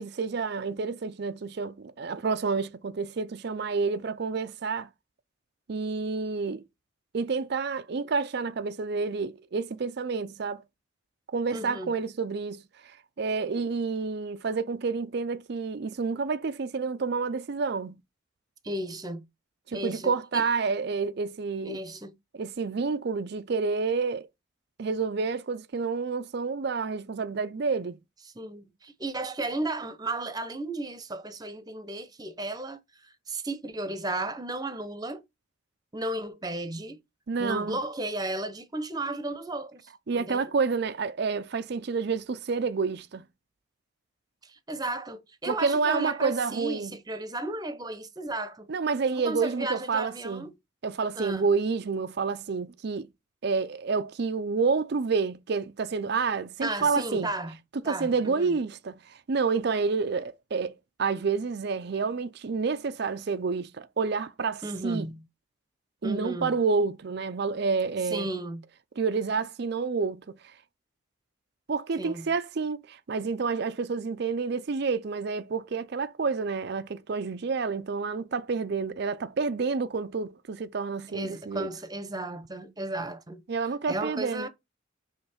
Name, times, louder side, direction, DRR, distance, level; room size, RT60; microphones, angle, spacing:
voice 1, 0.0-4.9 5.7-6.6 7.1-10.6 11.3-12.6 13.2-18.0 19.7-21.8 22.3-24.3 24.8-28.0 37.3-37.8 40.1-43.2 45.5-46.9 48.7-50.5 50.8-53.1 53.4-57.3 57.8-65.1 66.0-68.3 69.0-70.2 71.7-81.7 83.5-84.5, right 4 dB, 55° right, 0.5 m, -29 dB
voice 2, 11.5-11.9 18.6-19.3 19.7-20.4 21.6-22.2 28.3-35.2 35.9-37.0 37.4-40.5 44.4-48.7 49.1-50.5 51.1-51.5 56.6-57.6 57.8-58.5 64.6-65.2 66.0-66.6 68.1-68.6 72.0-72.3 81.1-83.4 83.9-84.5, right 2 dB, 20° right, 0.8 m, -34 dB
5.5 x 3.5 x 5.8 m
head